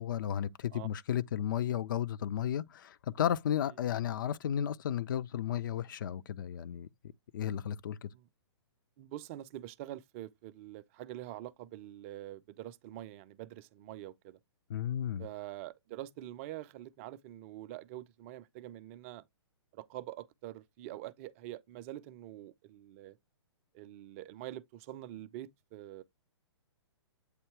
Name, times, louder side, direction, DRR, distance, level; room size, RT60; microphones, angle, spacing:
voice 1, 0.0-6.9 7.3-8.1 14.7-15.3, left 10 dB, 45° left, 0.4 m, -33 dB
voice 2, 9.0-14.4 15.2-19.2 19.7-23.2 23.7-26.0, right 14 dB, 30° right, 0.5 m, -45 dB
8.1 x 2.8 x 4.5 m
figure-of-eight pair, 120°, 14 cm